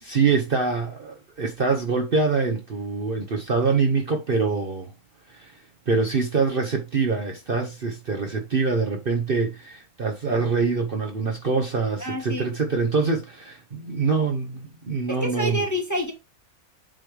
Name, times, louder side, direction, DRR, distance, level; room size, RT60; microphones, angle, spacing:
voice 1, 0.0-4.9 5.3-5.6 5.9-15.6, right 4 dB, 45° right, 1.0 m, -24 dB
voice 2, 12.0-12.5 15.1-16.1, equal, 15° left, 1.3 m, -27 dB
7.7 x 3.2 x 4.8 m
omnidirectional pair, 1.5 m